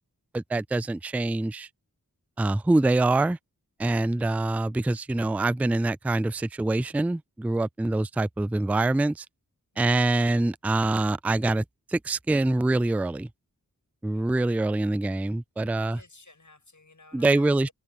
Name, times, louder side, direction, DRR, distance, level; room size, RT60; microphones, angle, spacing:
voice 1, 0.3-1.7 2.4-3.4 3.8-9.3 9.8-11.6 11.9-13.3 14.0-16.0 17.1-17.7, right 2 dB, 5° right, 0.3 m, -25 dB
voice 2, 15.7-17.7, left 3 dB, 60° left, 7.3 m, -53 dB
wide cardioid pair, 50°, 34 cm